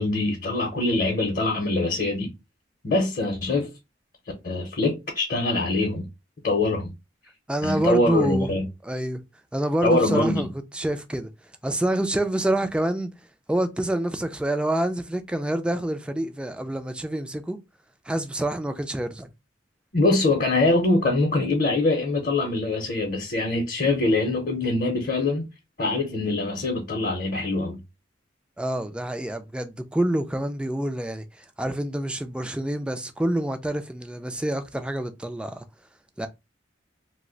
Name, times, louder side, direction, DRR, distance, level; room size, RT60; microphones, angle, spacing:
voice 1, 0.0-2.3 2.8-3.7 4.4-6.1 6.4-6.9 7.6-8.7 9.8-10.5 19.9-25.5 25.8-27.8, left 2 dB, 50° left, 0.7 m, -23 dB
voice 2, 7.5-8.5 8.8-9.2 9.5-10.5 10.7-11.3 11.6-13.1 13.5-17.6 18.1-19.3 28.6-35.6 36.2-36.3, right 1 dB, 5° right, 0.3 m, -27 dB
2.6 x 2.1 x 3.7 m
head